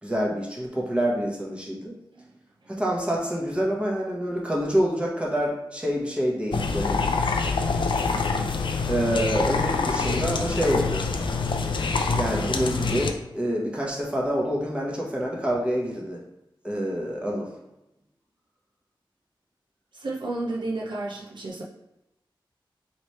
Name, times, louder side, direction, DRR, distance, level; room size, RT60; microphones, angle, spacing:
voice 1, 0.0-1.9 2.7-7.0 8.8-11.0 12.1-16.2 16.6-17.5, equal, 10° right, -3 dB, 1.0 m, -27 dB
sound 1, 6.5-13.1, left 4 dB, 70° left, 0.4 m, -26 dB
voice 2, 19.9-21.6, right 2 dB, 60° right, -4 dB, 0.6 m, -31 dB
3.2 x 3.2 x 4.2 m, 0.92 s
wide cardioid pair, 100°, 9 cm